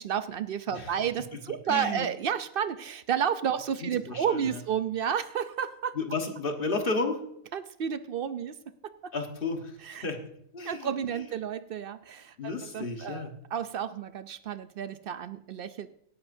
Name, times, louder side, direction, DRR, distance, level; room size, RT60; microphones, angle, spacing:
voice 1, 0.0-6.0 7.5-8.6 8.8-9.1 9.8-10.0 10.6-15.9, right 8 dB, 65° right, 12 dB, 0.5 m, -31 dB
voice 2, 1.7-2.1 4.1-4.6 5.9-7.2 9.1-10.2 10.5-11.2 12.4-13.3, left 3 dB, 40° left, 4 dB, 1.5 m, -32 dB
17.5 x 11.0 x 2.6 m, 0.75 s
omnidirectional pair, 1.4 m